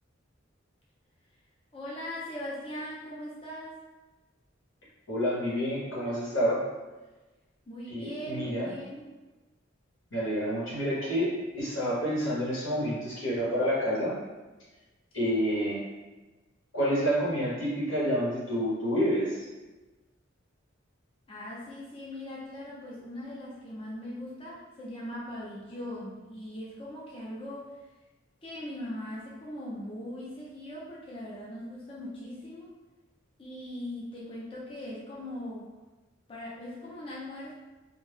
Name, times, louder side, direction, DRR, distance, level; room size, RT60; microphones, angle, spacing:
voice 1, 1.7-3.8 7.7-9.1 21.3-27.9 28.4-32.8 33.4-35.7 36.3-37.5, left 1 dB, 30° left, -7 dB, 0.5 m, -40 dB
voice 2, 5.1-6.6 7.9-8.7 10.1-14.2 15.1-15.8 16.7-19.4, equal, 85° left, -7 dB, 1.2 m, -28 dB
2.6 x 2.1 x 3.3 m, 1.2 s
head